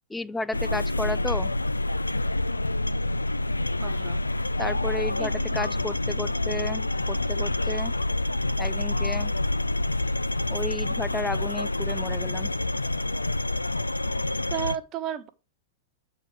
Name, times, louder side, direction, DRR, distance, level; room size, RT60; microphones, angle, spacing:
voice 1, 0.1-1.5 4.6-7.9 8.6-9.3 10.5-12.5, left 2 dB, 10° left, 0.3 m, -33 dB
sound 1, 0.5-14.8, left 2 dB, 80° left, 0.4 m, -27 dB
voice 2, 3.8-4.2 5.2-5.9 14.5-15.3, right 10 dB, 35° right, 1.1 m, -34 dB
8.5 x 4.5 x 6.0 m
figure-of-eight pair, 95°, 0 cm